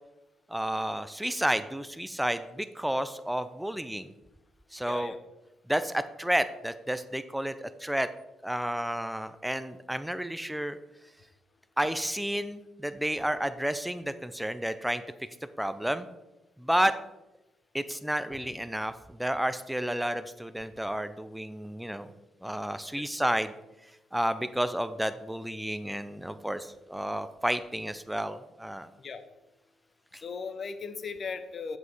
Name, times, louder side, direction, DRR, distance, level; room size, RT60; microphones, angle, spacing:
voice 1, 0.5-4.1 4.7-5.1 5.7-8.1 8.4-10.8 11.8-15.0 15.6-16.1 16.6-16.9 17.7-22.1 22.4-23.5 24.1-28.9, right 1 dB, 5° right, 12 dB, 0.7 m, -31 dB
voice 2, 4.8-5.2 22.9-23.0 29.0-29.2 30.1-31.8, left 5 dB, 45° left, 10 dB, 0.9 m, -37 dB
8.0 x 7.8 x 5.0 m, 0.99 s
figure-of-eight pair, 40°, 0 cm